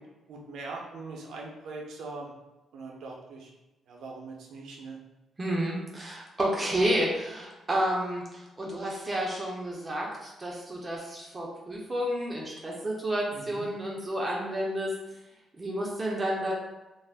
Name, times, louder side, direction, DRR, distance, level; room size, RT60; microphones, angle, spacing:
voice 1, 0.3-2.3 2.7-3.5 3.9-5.0 13.3-13.7, right 3 dB, 75° right, -1 dB, 0.6 m, -41 dB
voice 2, 5.4-14.9 15.6-16.5, right 1 dB, 30° right, -3 dB, 0.6 m, -30 dB
2.4 x 2.1 x 3.4 m, 1.0 s
supercardioid pair, 70°, 0 cm